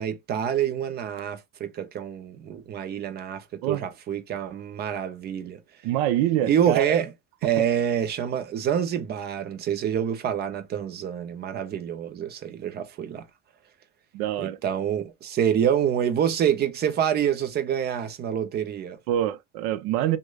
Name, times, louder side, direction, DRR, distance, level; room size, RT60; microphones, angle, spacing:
voice 1, 0.0-5.6 6.4-7.1 7.4-13.2 14.4-19.0, right 9 dB, 25° right, 0.4 m, -27 dB
voice 2, 5.8-7.0 14.1-14.6 19.1-20.2, right 12 dB, 80° right, 0.6 m, -25 dB
6.1 x 2.2 x 2.2 m
cardioid pair, 170°, 38 cm